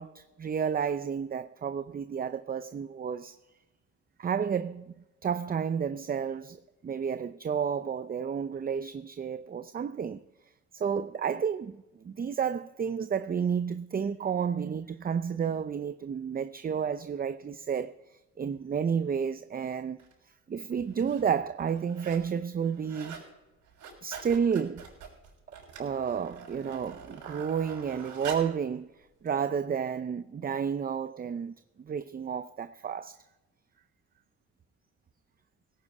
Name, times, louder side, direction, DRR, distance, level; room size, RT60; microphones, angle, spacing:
voice 1, 0.0-3.4 4.2-4.9 5.2-6.6 6.8-10.2 10.7-20.0 20.5-23.2 24.0-24.9 25.5-33.2, right 7 dB, 30° right, 0.5 m, -31 dB
sound 1, 20.0-20.1 20.8-21.3 21.6-22.3 22.6-23.3 23.6-28.6 29.3-29.4, right 6 dB, 80° right, 6.2 m, -45 dB
17.5 x 9.9 x 4.8 m
cardioid pair, 90°, 30 cm